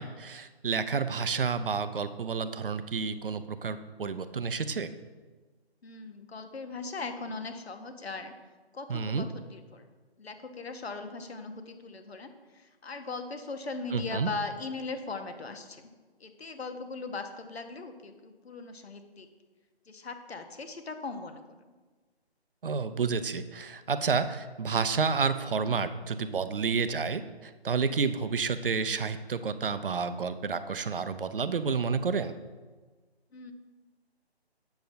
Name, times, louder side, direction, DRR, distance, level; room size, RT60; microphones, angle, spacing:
voice 1, 0.0-4.9 8.9-9.3 13.9-14.3 22.6-32.3, right 5 dB, 55° right, 11 dB, 0.5 m, -30 dB
voice 2, 5.8-8.3 8.7-9.2 9.5-9.9 10.2-15.9 16.2-19.3 19.9-21.4 33.3-33.5, left 3 dB, 70° left, 7 dB, 0.9 m, -39 dB
7.9 x 6.9 x 2.6 m, 1.3 s
figure-of-eight pair, 165°, 33 cm